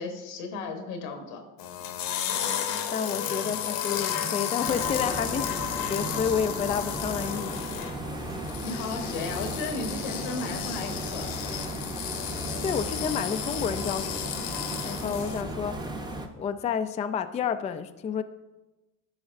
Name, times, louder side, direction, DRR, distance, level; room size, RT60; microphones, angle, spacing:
voice 1, 0.0-1.4 8.6-11.3, left 3 dB, 85° left, 5 dB, 1.2 m, -34 dB
sound 1, 1.6-15.4, left 9 dB, 65° left, 0.9 m, -33 dB
voice 2, 2.9-7.7 12.6-14.5 14.8-15.8 16.4-18.2, left 7 dB, 20° left, 9 dB, 0.3 m, -30 dB
sound 2, 3.2-6.2 6.5-8.8 9.1-9.5, right 3 dB, 85° right, 2.3 m, -47 dB
sound 3, 4.6-16.3, right 1 dB, 10° right, 0.8 m, -36 dB
11.0 x 4.8 x 2.5 m, 1.1 s
supercardioid pair, 85°, 38 cm